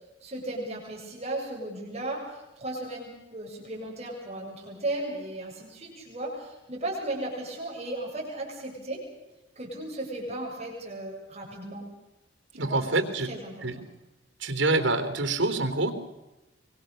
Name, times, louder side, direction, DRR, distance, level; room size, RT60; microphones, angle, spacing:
voice 1, 0.2-9.0 9.6-11.8 12.5-12.8 13.2-13.8, right 1 dB, 35° right, -2 dB, 7.3 m, -36 dB
voice 2, 12.5-13.3 13.6-13.8 14.4-15.9, right 2 dB, 85° right, 8 dB, 3.7 m, -26 dB
24.5 x 24.5 x 6.7 m, 1.0 s
head